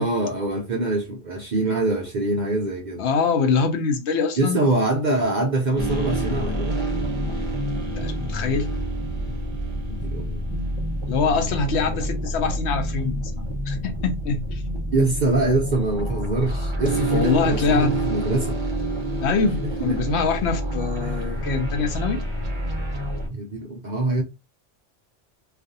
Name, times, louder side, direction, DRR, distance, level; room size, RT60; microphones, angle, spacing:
voice 1, 0.0-3.0 4.4-6.8 9.9-10.4 14.9-18.6 19.8-20.0 21.0-21.5 23.3-24.2, right 2 dB, 60° right, 0.5 m, -24 dB
voice 2, 3.0-4.6 8.0-8.7 11.1-13.3 13.7-14.6 17.1-17.9 19.2-22.2, left 5 dB, 70° left, 0.8 m, -24 dB
sound 1, 5.8-23.3, right 1 dB, 30° right, 0.7 m, -27 dB
2.4 x 2.4 x 2.6 m
omnidirectional pair, 1.3 m